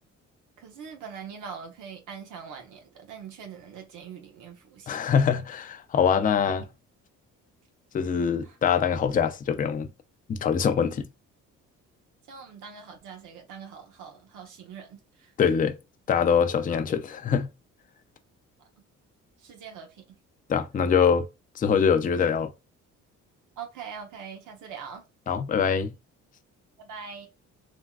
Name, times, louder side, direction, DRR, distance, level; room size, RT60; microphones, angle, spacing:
voice 1, 0.6-4.9 6.4-6.7 8.4-8.6 12.3-15.3 19.4-20.0 23.6-25.0 26.8-27.3, right 6 dB, 85° right, 0.8 m, -42 dB
voice 2, 4.9-6.7 7.9-9.9 10.3-11.1 15.4-15.8 16.1-17.5 20.5-21.3 21.6-22.5 25.3-25.9, left 7 dB, 30° left, 0.4 m, -23 dB
3.4 x 2.2 x 2.3 m
cardioid pair, 90°, 30 cm